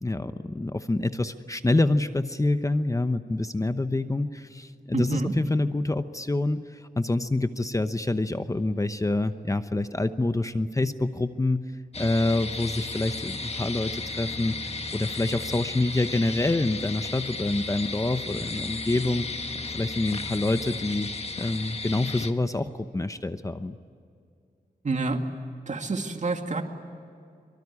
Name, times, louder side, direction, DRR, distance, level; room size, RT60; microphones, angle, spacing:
voice 1, 0.0-19.4 19.7-21.1 21.4-23.8, left 2 dB, 20° left, 10 dB, 0.9 m, -27 dB
voice 2, 4.9-5.3 24.8-25.2 25.7-26.6, right 3 dB, 50° right, 5 dB, 2.4 m, -28 dB
sound 1, 11.9-22.3, left 3 dB, 40° left, 1.5 m, -34 dB
24.5 x 24.0 x 9.8 m, 2.4 s
wide cardioid pair, 85°, 16 cm